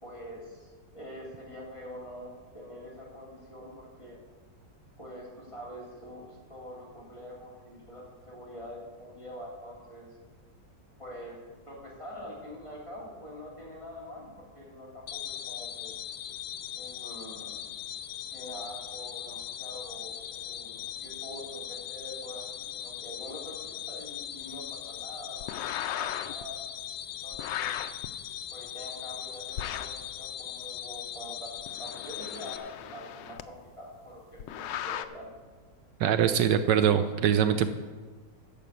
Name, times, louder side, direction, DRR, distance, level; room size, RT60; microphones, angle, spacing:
voice 1, 0.0-4.2 5.0-10.2 11.0-16.0 16.8-17.6 18.3-26.6 27.2-27.8 28.5-31.5 31.8-35.3, equal, 15° left, -5 dB, 3.4 m, -45 dB
sound 1, 15.1-32.6, left 10 dB, 70° left, 1.3 m, -40 dB
sound 2, 25.4-26.4 27.3-28.1 29.6-30.0 31.6-33.4 34.4-35.1, left 11 dB, 85° left, 1.3 m, -36 dB
voice 2, 36.0-37.7, right 9 dB, 80° right, 10 dB, 1.2 m, -23 dB
10.5 x 6.9 x 8.3 m, 1.5 s
omnidirectional pair, 1.9 m